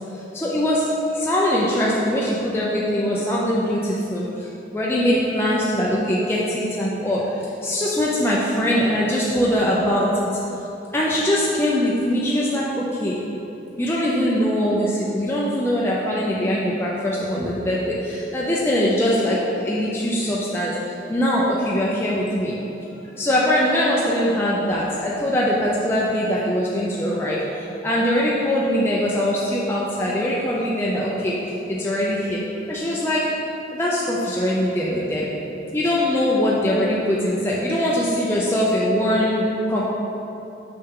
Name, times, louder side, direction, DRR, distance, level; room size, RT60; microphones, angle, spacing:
voice 1, 0.1-10.3 10.9-13.2 13.8-22.6 23.2-31.3 31.7-32.4 32.7-33.3 33.7-35.3 35.7-39.8, equal, 15° left, -6 dB, 0.5 m, -22 dB
6.6 x 5.8 x 3.7 m, 3.0 s
head